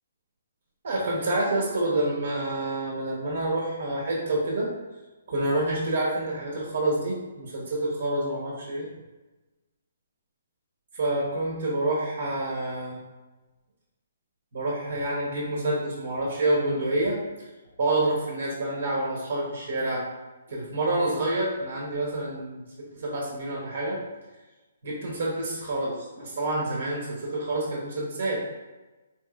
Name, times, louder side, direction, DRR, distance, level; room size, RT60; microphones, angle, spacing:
voice 1, 0.8-4.7 5.3-8.9 10.9-13.0 14.5-17.2 17.8-20.1 20.5-24.0 24.8-28.4, right 2 dB, 65° right, -4 dB, 1.0 m, -28 dB
4.0 x 3.0 x 2.4 m, 1.1 s
hypercardioid pair, 160°, 0 cm